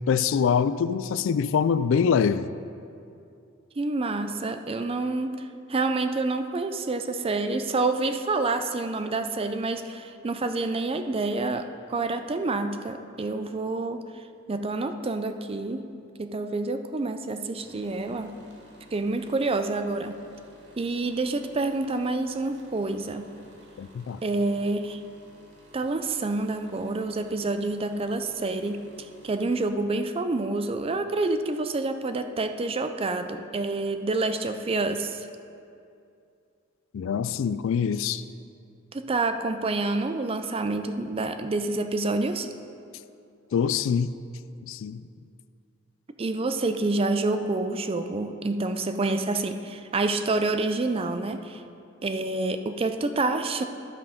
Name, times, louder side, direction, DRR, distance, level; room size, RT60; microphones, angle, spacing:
voice 1, 0.1-2.5 23.8-24.2 36.9-38.2 43.5-44.1 44.6-45.0, left 6 dB, 65° left, 14 dB, 0.3 m, -24 dB
voice 2, 3.8-15.9 16.2-18.4 18.9-20.2 20.8-23.3 24.2-25.0 25.7-28.8 29.2-35.3 38.9-42.5 46.2-51.6 52.0-53.6, right 3 dB, 25° right, 8 dB, 0.4 m, -28 dB
sound 1, 17.6-29.7, equal, 60° right, 1.4 m, -54 dB
12.0 x 5.8 x 5.1 m, 2.5 s
head